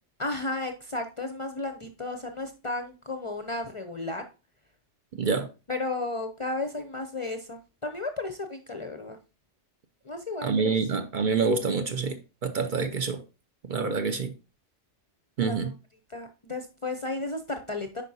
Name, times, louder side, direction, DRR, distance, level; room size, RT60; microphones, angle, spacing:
voice 1, 0.2-4.2 5.7-9.2 10.0-10.7 15.4-15.7 16.1-18.0, left 2 dB, 35° left, 0.5 m, -33 dB
voice 2, 5.1-5.5 10.4-13.2 13.7-14.3 15.4-15.7, right 5 dB, 50° right, 0.7 m, -27 dB
8.5 x 5.3 x 2.7 m
omnidirectional pair, 1.2 m